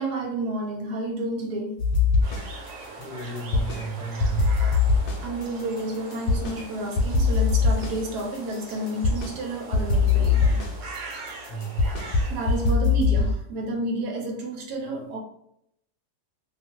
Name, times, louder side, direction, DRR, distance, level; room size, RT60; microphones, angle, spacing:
voice 1, 0.0-1.7 3.7-4.8 5.2-10.6 11.8-15.2, right 2 dB, 80° right, 1 dB, 1.2 m, -31 dB
sound 1, 1.8-2.7 3.0-3.9 4.2-6.6 7.0-9.4 9.7-13.4, left 4 dB, 75° left, 1.0 m, -22 dB
sound 2, 2.2-12.7, right 3 dB, 60° right, 0.9 m, -42 dB
voice 2, 3.0-4.6 11.5-11.9, right 5 dB, 45° left, -7 dB, 0.7 m, -33 dB
2.8 x 2.4 x 2.9 m, 0.74 s
omnidirectional pair, 1.7 m